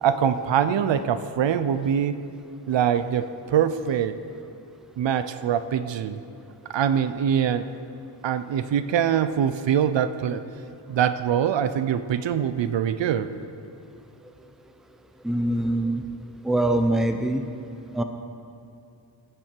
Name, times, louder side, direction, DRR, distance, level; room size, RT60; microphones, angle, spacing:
voice 1, 0.0-2.2 2.7-4.2 5.0-6.2 6.7-7.6 8.2-10.4 10.9-13.3, right 8 dB, 75° right, 12 dB, 0.6 m, -23 dB
voice 2, 15.2-16.0 16.4-17.4 17.9-18.0, right 1 dB, ahead, 7 dB, 0.5 m, -23 dB
15.0 x 7.7 x 4.5 m, 2.7 s
wide cardioid pair, 115°, 45 cm